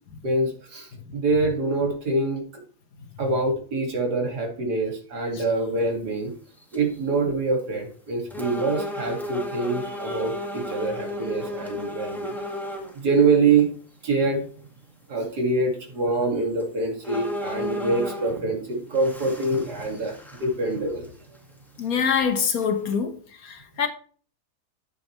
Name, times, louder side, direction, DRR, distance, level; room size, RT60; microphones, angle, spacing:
voice 1, 0.2-2.4 3.2-6.3 6.7-12.3 12.9-13.7 14.0-14.4 15.1-21.1, right 3 dB, 90° right, 2.9 m, -25 dB
sound 1, 5.9-6.1 6.6-7.0 7.6-7.7 8.3-12.9 13.6-13.7 16.1-16.2 16.6-16.7 17.0-18.5 18.9-20.8 21.0-21.1 21.8-21.9 22.6-22.9, left 1 dB, ahead, 1.8 m, -34 dB
voice 2, 21.8-23.2 23.4-23.9, left 6 dB, 65° left, 1.7 m, -24 dB
10.5 x 7.7 x 3.2 m
omnidirectional pair, 1.7 m